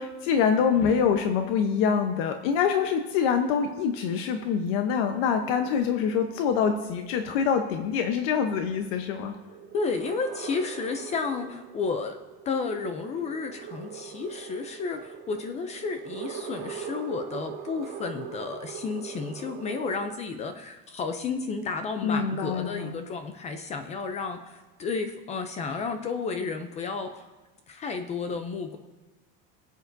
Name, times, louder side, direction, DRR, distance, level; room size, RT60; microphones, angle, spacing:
voice 1, 0.0-9.3 22.0-23.0, left 7 dB, 70° left, 6 dB, 0.9 m, -25 dB
sound 1, 2.8-20.1, right 7 dB, 50° right, 3.1 m, -42 dB
voice 2, 9.7-12.2 12.5-27.3 27.7-28.8, left 4 dB, 25° left, 7 dB, 0.4 m, -32 dB
20.5 x 8.1 x 2.6 m, 1.3 s
cardioid pair, 175°, 29 cm